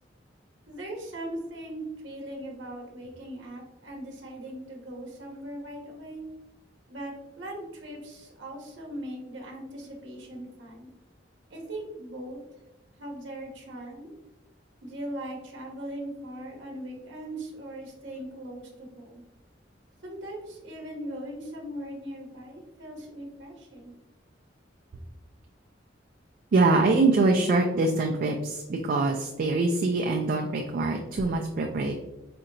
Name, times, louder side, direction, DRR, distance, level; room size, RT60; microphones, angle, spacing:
voice 1, 0.7-6.2 6.9-10.9 11.5-12.4 13.0-14.1 14.8-19.2 20.0-23.9, right 1 dB, 70° right, 0 dB, 0.8 m, -39 dB
voice 2, 26.5-31.9, right 3 dB, 50° right, 2 dB, 0.3 m, -24 dB
4.2 x 2.8 x 2.5 m, 1.0 s
head